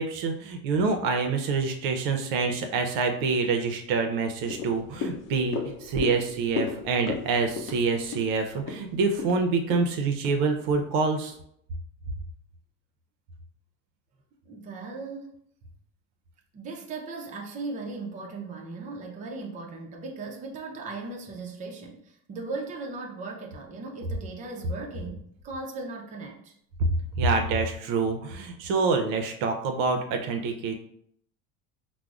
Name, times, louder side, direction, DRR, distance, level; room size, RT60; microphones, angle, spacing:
voice 1, 0.0-11.3 26.8-26.9 27.2-30.7, right 4 dB, 65° right, 4 dB, 0.6 m, -26 dB
sound 1, 4.5-10.9 11.3-11.4, left 5 dB, 60° left, 0.7 m, -36 dB
voice 2, 14.5-15.3 16.5-26.5, right 3 dB, 20° right, 0 dB, 0.5 m, -38 dB
4.8 x 2.0 x 2.4 m, 0.70 s
supercardioid pair, 115°, 39 cm